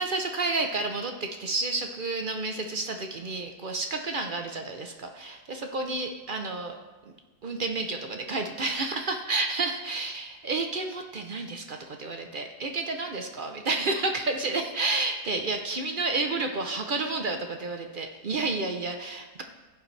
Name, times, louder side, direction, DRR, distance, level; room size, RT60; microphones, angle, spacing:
voice 1, 0.0-6.7 7.0-7.1 7.4-19.4, right 3 dB, 55° right, 4 dB, 0.6 m, -30 dB
16.0 x 7.5 x 3.3 m, 1.2 s
omnidirectional pair, 1.8 m